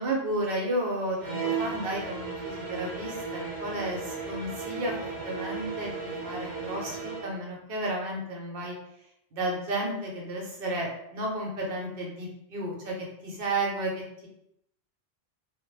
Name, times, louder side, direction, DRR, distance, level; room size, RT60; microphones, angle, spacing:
voice 1, 0.0-8.8 9.3-12.9 13.2-14.3, right 1 dB, 60° right, -2 dB, 0.8 m, -32 dB
sound 1, 1.2-7.3, right 5 dB, 10° right, 0.7 m, -35 dB
2.1 x 2.0 x 3.0 m, 0.76 s
omnidirectional pair, 1.1 m